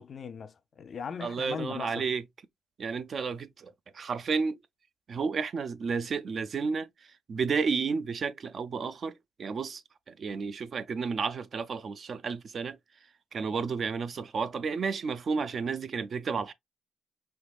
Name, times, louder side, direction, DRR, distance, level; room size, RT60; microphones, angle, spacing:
voice 1, 0.0-2.1, left 6 dB, 50° left, 0.4 m, -39 dB
voice 2, 1.2-2.2 2.8-4.6 5.1-6.9 7.3-9.8 10.1-12.8 13.3-16.5, right 5 dB, 50° right, 0.4 m, -32 dB
3.5 x 3.0 x 2.3 m
cardioid pair, 90°, 0 cm